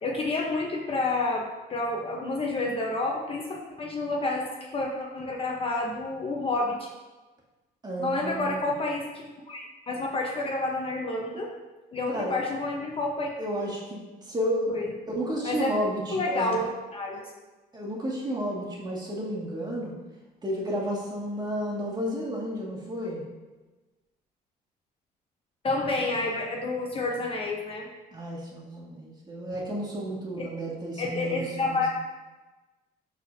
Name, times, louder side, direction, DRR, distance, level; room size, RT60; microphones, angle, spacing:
voice 1, 0.0-6.9 8.0-11.5 11.9-13.3 14.7-14.9 15.4-15.7 16.1-17.3 25.6-27.9 30.4-30.5 31.0-31.9, left 2 dB, 35° left, 0 dB, 0.9 m, -29 dB
voice 2, 7.8-8.6 12.1-12.4 13.4-16.5 17.1-17.2 17.7-19.9 20.4-23.2 28.1-31.8, equal, 25° right, -3 dB, 2.0 m, -32 dB
12.5 x 4.2 x 2.7 m, 1.2 s
cardioid pair, 110°, 17 cm